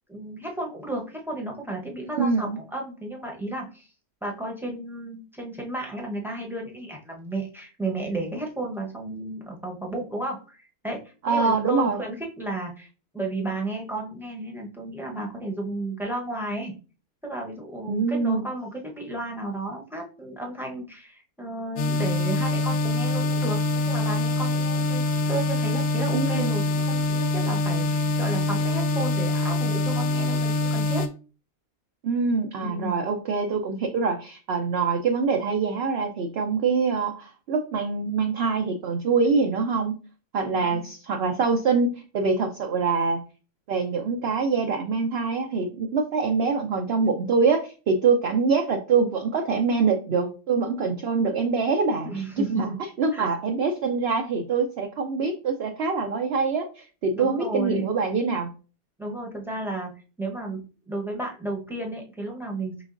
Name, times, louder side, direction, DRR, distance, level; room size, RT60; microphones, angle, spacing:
voice 1, 0.1-3.9 4.2-12.9 13.1-16.7 17.2-31.0 32.6-33.0 52.0-52.6 53.1-53.3 57.1-57.9 59.0-59.9 60.2-62.8, right 2 dB, ahead, 0 dB, 0.7 m, -33 dB
voice 2, 2.0-2.6 11.2-12.0 17.9-18.5 26.1-26.5 32.0-40.0 40.3-43.2 43.7-58.5, right 4 dB, 65° right, 4 dB, 0.6 m, -24 dB
sound 1, 21.8-31.1, left 2 dB, 70° left, 0.9 m, -24 dB
5.0 x 3.5 x 2.5 m, 0.36 s
omnidirectional pair, 1.5 m